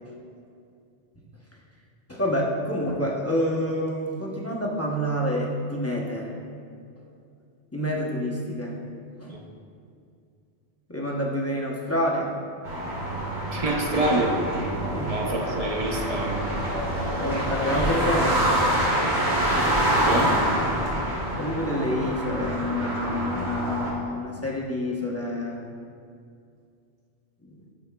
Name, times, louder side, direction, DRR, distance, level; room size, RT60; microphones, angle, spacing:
voice 1, 2.1-6.3 7.7-8.8 9.2-9.4 10.9-12.4 14.9-15.2 17.2-18.6 21.4-25.6 27.5-27.6, equal, 15° left, -3 dB, 0.6 m, -28 dB
sound 1, 12.6-23.9, right 1 dB, 75° right, 1.8 m, -26 dB
voice 2, 13.5-14.4 15.1-16.4 20.0-20.4, right 2 dB, 40° right, 0 dB, 0.6 m, -26 dB
11.0 x 4.8 x 2.2 m, 2.4 s
omnidirectional pair, 1.1 m